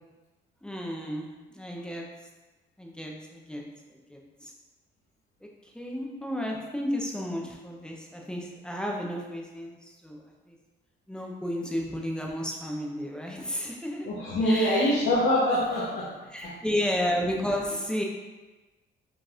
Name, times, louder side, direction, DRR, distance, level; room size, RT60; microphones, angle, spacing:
voice 1, 0.6-2.1 2.8-3.6 3.9-4.5 5.6-10.2 10.5-10.6 11.1-14.1 14.4-14.9 16.3-18.0, equal, 5° left, -1 dB, 0.8 m, -32 dB
voice 2, 14.0-16.2 16.4-16.5, left 1 dB, 85° left, -8 dB, 1.1 m, -24 dB
4.9 x 3.9 x 2.5 m, 1.2 s
cardioid pair, 90°, 20 cm